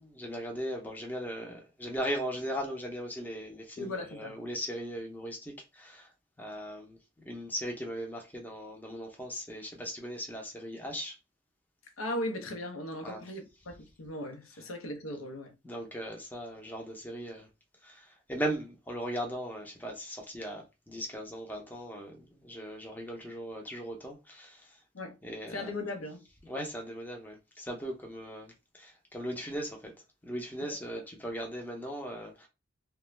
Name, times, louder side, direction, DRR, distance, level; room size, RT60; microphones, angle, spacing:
voice 1, 0.0-6.1 6.4-7.0 7.3-11.2 13.0-13.2 15.6-17.5 17.8-24.8 25.2-25.7 26.4-29.9 30.2-32.5, equal, 10° left, 0.5 m, -38 dB
voice 2, 3.8-4.4 12.0-15.6 24.9-25.2 25.4-26.2 30.6-30.8, left 1 dB, 90° left, 0.7 m, -38 dB
2.4 x 2.2 x 3.1 m
head